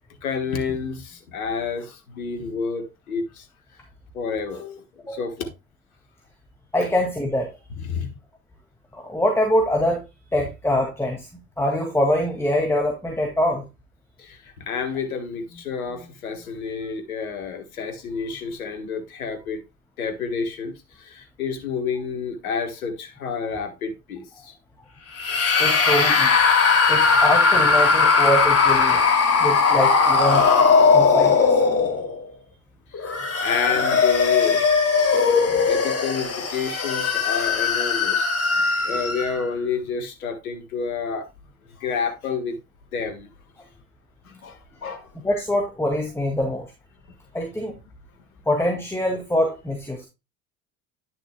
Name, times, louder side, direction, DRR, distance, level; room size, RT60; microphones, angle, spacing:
voice 1, 0.2-3.5 4.1-4.8 5.1-5.5 6.8-6.9 7.7-8.1 14.2-19.6 20.0-24.5 27.1-27.2 29.1-29.5 29.7-29.8 32.9-34.6 35.3-41.3 41.7-42.6 42.9-43.3 44.2-45.1, left 5 dB, 80° left, 1.5 m, -30 dB
voice 2, 6.7-7.5 8.9-10.0 10.3-11.3 11.6-13.6 25.6-26.3 26.9-29.0 29.4-30.4 30.9-31.5 45.2-46.7 47.3-47.8 48.5-50.1, left 1 dB, 5° left, 2.0 m, -24 dB
sound 1, 25.2-32.2 32.9-39.5, left 5 dB, 35° left, 2.6 m, -19 dB
10.5 x 6.4 x 2.2 m
hypercardioid pair, 65°, 42 cm